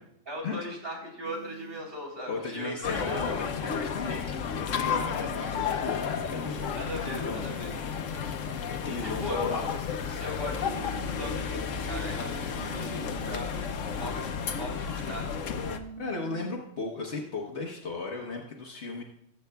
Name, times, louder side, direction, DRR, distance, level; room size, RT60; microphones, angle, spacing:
voice 1, 0.3-3.2 6.8-7.7 9.2-9.4 10.2-15.3, equal, 50° right, -2 dB, 3.5 m, -39 dB
sound 1, 1.2-1.8 2.8-3.8 4.8-5.9 6.8-7.9 8.8-9.9 10.5-11.5 12.5-13.5 15.5-16.6, right 5 dB, 90° right, 1.3 m, -46 dB
voice 2, 2.3-7.4 8.8-10.2 16.0-19.0, left 3 dB, 60° left, 0 dB, 1.3 m, -36 dB
sound 2, 2.8-15.8, left 6 dB, 90° left, 1.1 m, -32 dB
20.0 x 8.3 x 2.3 m, 0.75 s
omnidirectional pair, 1.3 m